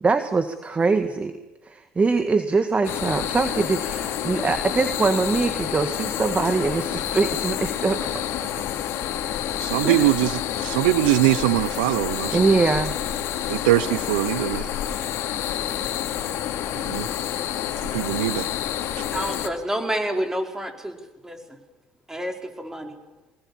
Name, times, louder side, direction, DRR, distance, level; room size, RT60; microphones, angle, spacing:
voice 1, 0.0-1.3 1.7-8.3 9.8-10.1 12.3-13.0, right 4 dB, 25° right, 1.8 m, -23 dB
sound 1, 2.8-19.5, left 11 dB, 65° left, 2.8 m, -28 dB
voice 2, 9.6-12.5 13.5-14.7 16.7-17.1 17.9-18.5, right 16 dB, 85° right, 0.7 m, -22 dB
voice 3, 19.1-20.9 21.2-21.4 22.1-22.9, right 1 dB, 10° right, 5.0 m, -28 dB
24.0 x 20.5 x 7.3 m
supercardioid pair, 75°, 5 cm